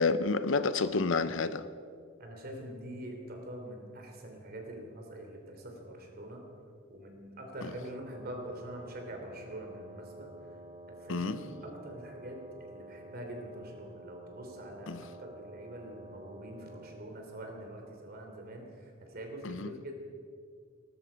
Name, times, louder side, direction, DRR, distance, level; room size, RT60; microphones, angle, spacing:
voice 1, 0.0-1.7 11.1-11.4 14.9-15.0 19.4-19.7, left 4 dB, 65° left, 13 dB, 0.7 m, -29 dB
voice 2, 2.2-6.4 6.9-10.5 11.0-19.9, right 1 dB, 50° right, 2 dB, 3.1 m, -44 dB
Wind instrument woodwind instrument, 7.8-17.1, right 1 dB, 20° right, 1.9 m, -50 dB
18.5 x 13.0 x 5.2 m, 2.2 s
head